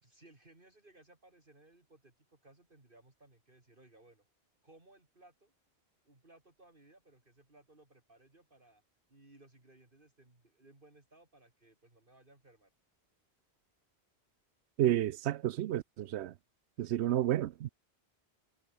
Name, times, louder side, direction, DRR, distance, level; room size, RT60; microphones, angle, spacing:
voice 1, 0.0-4.2 4.6-5.5 6.0-8.8 9.1-12.7 16.8-17.3, right 2 dB, 50° right, 4.0 m, -62 dB
voice 2, 14.8-16.3 16.8-17.7, right 12 dB, 85° right, 0.9 m, -31 dB
omnidirectional pair, 1.1 m